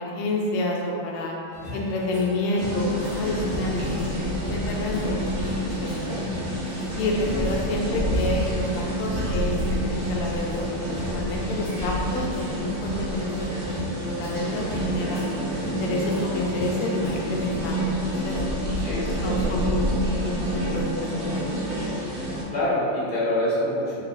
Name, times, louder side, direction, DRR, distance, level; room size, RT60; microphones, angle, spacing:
voice 1, 0.0-1.4 1.7-5.2 5.5-6.2 7.0-13.8 14.0-15.2 15.6-18.4 19.2-20.0 20.2-21.4, left 2 dB, 90° left, -1 dB, 1.5 m, -29 dB
sound 1, 1.5-17.7, equal, 55° left, 1.3 m, -35 dB
sound 2, 2.6-22.4, equal, 60° right, 1.0 m, -28 dB
voice 2, 18.7-19.5 22.5-24.0, left 1 dB, 70° left, -10 dB, 0.4 m, -26 dB
3.7 x 3.0 x 2.4 m, 2.6 s
omnidirectional pair, 2.3 m